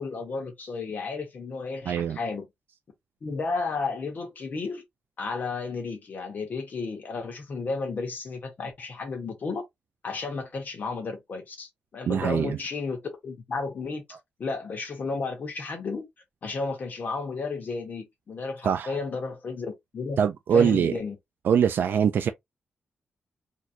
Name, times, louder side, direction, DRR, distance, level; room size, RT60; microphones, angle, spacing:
voice 1, 0.0-2.5 3.2-4.8 5.2-9.6 10.0-14.0 14.4-16.1 16.4-20.2 20.5-21.2, left 4 dB, 50° left, 1.4 m, -33 dB
voice 2, 1.9-2.2 12.1-12.6 18.6-19.0 20.2-20.9 21.4-22.3, right 7 dB, 70° right, 0.4 m, -23 dB
4.2 x 3.0 x 2.6 m
wide cardioid pair, 120°, 4 cm